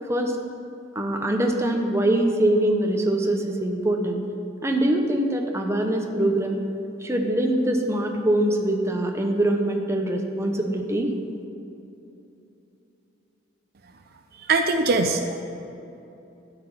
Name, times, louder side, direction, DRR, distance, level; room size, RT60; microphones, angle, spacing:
voice 1, 0.9-4.2 4.6-6.6 7.0-11.1, right 1 dB, 15° right, 2 dB, 0.8 m, -23 dB
voice 2, 14.5-15.4, right 3 dB, 50° right, 6 dB, 0.5 m, -21 dB
12.0 x 4.9 x 7.7 m, 2.8 s
head